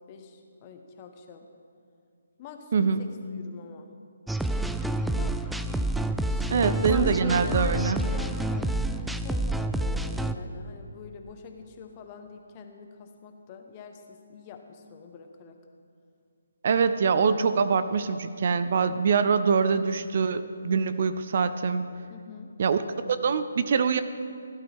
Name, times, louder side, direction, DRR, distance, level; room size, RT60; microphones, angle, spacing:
voice 1, 0.0-1.5 2.4-3.9 5.2-5.4 6.3-15.6 22.1-22.5, left 5 dB, 30° left, 5 dB, 1.2 m, -45 dB
voice 2, 2.7-3.1 6.5-8.0 16.6-21.9 22.6-22.8 23.1-24.0, right 5 dB, 50° right, 12 dB, 0.6 m, -24 dB
sound 1, 4.3-10.3, right 1 dB, ahead, 0.3 m, -28 dB
16.5 x 11.5 x 3.6 m, 2.4 s
figure-of-eight pair, 145°, 0 cm